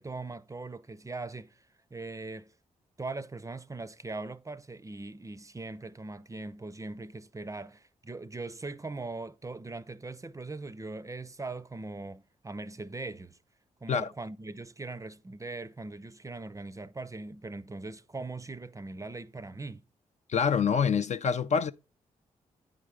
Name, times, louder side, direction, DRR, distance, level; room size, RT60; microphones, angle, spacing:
voice 1, 0.0-1.7 1.9-2.5 3.0-13.4 13.8-19.8, right 3 dB, 20° right, 0.5 m, -40 dB
voice 2, 20.3-21.7, left 6 dB, 50° left, 0.4 m, -26 dB
9.3 x 3.7 x 4.9 m
hypercardioid pair, 40°, 15 cm